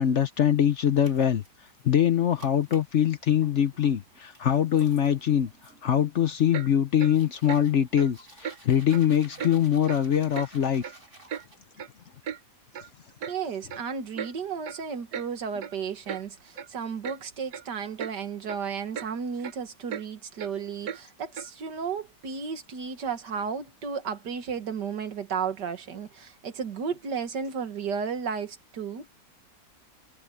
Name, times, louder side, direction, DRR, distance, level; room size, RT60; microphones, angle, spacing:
voice 1, 0.0-1.4 1.8-5.5 5.8-10.9, left 9 dB, 55° left, 0.9 m, -23 dB
sound 1, 0.8-1.9 2.4-11.6, right 1 dB, 45° right, 8.1 m, -53 dB
Clock, 6.5-6.7 7.0-7.1 7.5-7.6 8.0-8.1 8.4-8.6 8.9-9.1 9.4-9.5 9.9-10.0 10.4-10.5 10.8-11.4 11.8-11.9 12.2-12.4 12.7-12.9 13.2-13.4 13.7-13.8 14.2-14.3 14.6-14.8 15.1-15.3 15.6-15.7 16.1-16.2 16.6-16.7 17.0-17.2 17.5-17.7 18.0-18.1 18.5-18.6 18.9-19.1 19.4-19.5 19.9-20.0 20.4-20.5 20.8-21.0 21.4-21.5, right 7 dB, 70° right, 1.5 m, -36 dB
voice 2, 13.3-29.1, right 6 dB, 90° right, 2.3 m, -33 dB
omnidirectional pair, 1.8 m